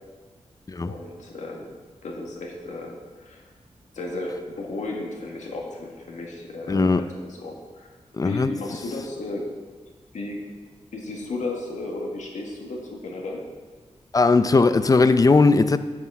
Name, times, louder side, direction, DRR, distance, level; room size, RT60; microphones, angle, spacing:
voice 1, 0.8-3.4 3.9-7.9 8.2-9.5 10.1-10.5 10.9-13.5, left 2 dB, 85° left, -1 dB, 1.8 m, -34 dB
voice 2, 6.7-7.0 8.2-8.5 14.1-15.8, left 3 dB, 30° left, 12 dB, 0.5 m, -18 dB
7.5 x 6.1 x 7.2 m, 1.4 s
wide cardioid pair, 100°, 12 cm